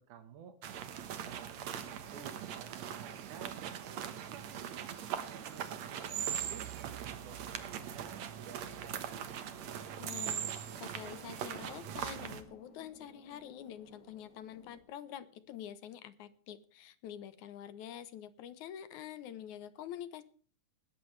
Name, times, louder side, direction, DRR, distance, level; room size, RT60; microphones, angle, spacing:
voice 1, 0.0-5.0 5.3-9.3, right 8 dB, 85° right, 7 dB, 2.8 m, -53 dB
sound 1, 0.6-12.4, right 9 dB, 65° right, 2.4 m, -41 dB
sound 2, 8.2-14.8, left 2 dB, 50° left, 3.5 m, -60 dB
voice 2, 10.0-20.2, left 10 dB, 75° left, 13 dB, 2.5 m, -47 dB
20.0 x 14.0 x 3.3 m, 0.42 s
omnidirectional pair, 3.4 m